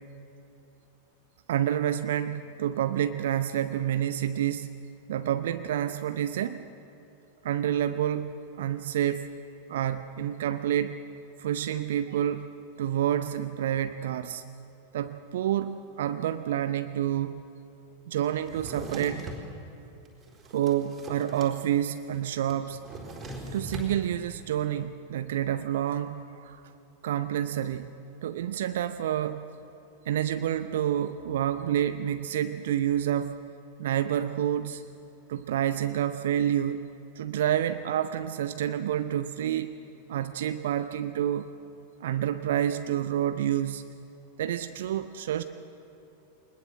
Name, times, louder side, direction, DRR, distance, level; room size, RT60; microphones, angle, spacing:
voice 1, 1.5-4.7 5.1-6.6 7.4-9.3 9.7-11.0 11.4-12.5 12.8-14.4 14.9-17.4 18.1-19.3 20.5-22.8 23.5-26.6 27.0-27.9 28.2-29.4 30.1-33.4 33.8-34.8 35.3-36.9 37.1-39.7 40.1-41.5 42.0-43.8 44.4-45.4, right 10 dB, 60° right, 11 dB, 0.7 m, -28 dB
Drawer open or close, 18.4-19.5 20.0-21.5 21.8-21.9 22.1-23.9, right 1 dB, 20° right, 4.2 m, -40 dB
23.5 x 20.5 x 7.7 m, 2.8 s
figure-of-eight pair, 90°, 0 cm